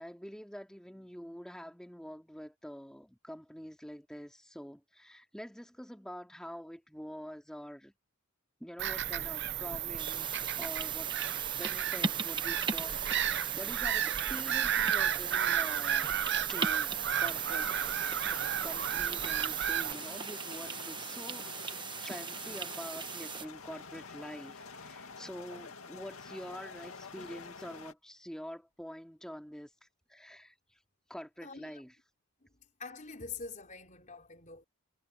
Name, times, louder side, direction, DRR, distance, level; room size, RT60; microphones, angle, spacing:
voice 1, 0.0-7.9 8.6-11.1 11.6-16.2 16.5-17.8 18.6-29.7 30.1-30.5 31.1-32.0, equal, 5° left, 2.5 m, -46 dB
Bird vocalization bird call bird song / Gull seagull, 8.8-19.9, right 10 dB, 50° right, 0.9 m, -32 dB
sound 1, 10.0-23.4, right 5 dB, 20° right, 1.0 m, -39 dB
sound 2, 16.9-27.9, left 4 dB, 75° left, 2.2 m, -48 dB
voice 2, 31.4-31.8 32.8-34.7, left 4 dB, 35° left, 4.5 m, -45 dB
head